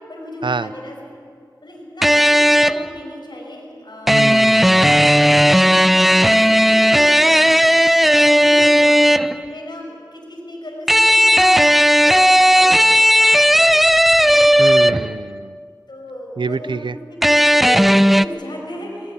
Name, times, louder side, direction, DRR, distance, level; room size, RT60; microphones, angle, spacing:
voice 1, 0.1-1.0 1.6-4.5 5.1-7.7 8.1-11.7 12.0-13.8 14.2-14.8 15.9-16.8 17.1-19.1, left 1 dB, 65° left, -1 dB, 5.8 m, -35 dB
sound 1, 2.0-2.9 4.1-9.4 10.9-15.2 17.2-18.3, equal, ahead, 0.4 m, -14 dB
voice 2, 4.1-5.2 14.6-15.6 16.4-17.0, right 4 dB, 85° right, 16 dB, 0.5 m, -26 dB
20.5 x 19.5 x 7.4 m, 2.2 s
wide cardioid pair, 65°, 8 cm